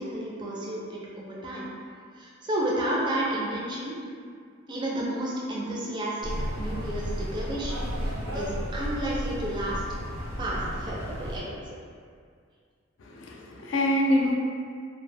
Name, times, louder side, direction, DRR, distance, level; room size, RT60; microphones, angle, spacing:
voice 1, 0.0-1.7 2.2-4.0 4.7-9.8 10.4-11.8, right 1 dB, 20° right, -5 dB, 0.3 m, -32 dB
sound 1, 6.2-11.4, equal, 80° right, 0.9 m, -33 dB
voice 2, 13.0-14.3, left 1 dB, 65° left, -1 dB, 0.3 m, -25 dB
2.0 x 2.0 x 3.2 m, 2.1 s
head